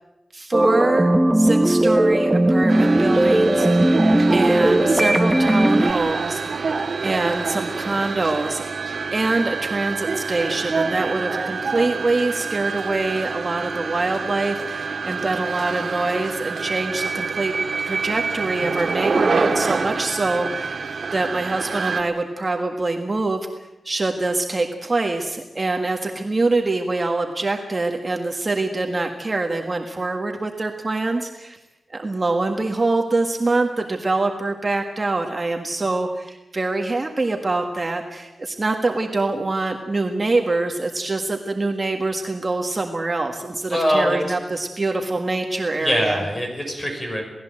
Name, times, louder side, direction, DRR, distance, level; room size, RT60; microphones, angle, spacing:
voice 1, 0.3-4.0 4.3-6.4 7.0-8.6 9.1-17.5 17.8-23.4 23.8-31.6 31.9-46.2, right 2 dB, 25° right, 3 dB, 1.7 m, -24 dB
sound 1, 0.5-5.9, right 1 dB, 10° right, 1.1 m, -17 dB
sound 2, 2.7-22.0, right 4 dB, 50° right, 1.9 m, -26 dB
voice 2, 43.7-44.2 45.8-47.3, equal, 20° left, 2 dB, 6.3 m, -22 dB
28.0 x 18.5 x 7.7 m, 0.98 s
wide cardioid pair, 170°, 0 cm